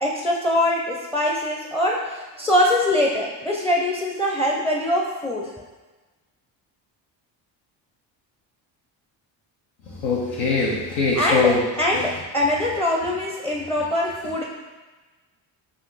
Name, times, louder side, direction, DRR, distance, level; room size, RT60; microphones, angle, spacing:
voice 1, 0.0-5.5 11.2-14.4, left 1 dB, 5° left, -2 dB, 0.6 m, -23 dB
voice 2, 9.9-11.6 11.9-12.0, left 4 dB, 80° left, -4 dB, 1.1 m, -22 dB
4.3 x 2.6 x 4.0 m, 1.2 s
supercardioid pair, 70°, 50 cm